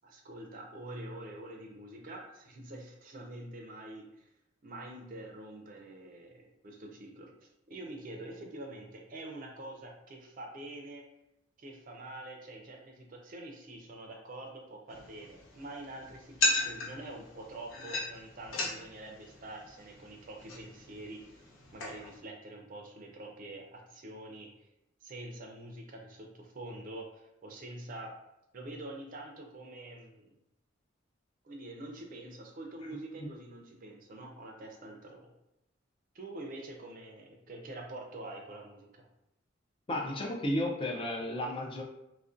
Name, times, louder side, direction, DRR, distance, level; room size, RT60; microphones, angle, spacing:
voice 1, 0.0-4.3 4.6-11.1 11.6-21.4 21.7-24.5 25.0-28.1 28.5-30.3 31.4-35.3 36.1-39.1, right 1 dB, 45° right, 2 dB, 0.4 m, -46 dB
sound 1, 14.9-22.2, left 2 dB, 85° left, 0.6 m, -37 dB
voice 2, 39.9-41.8, left 1 dB, 25° left, 1 dB, 0.3 m, -33 dB
2.4 x 2.1 x 2.4 m, 0.87 s
head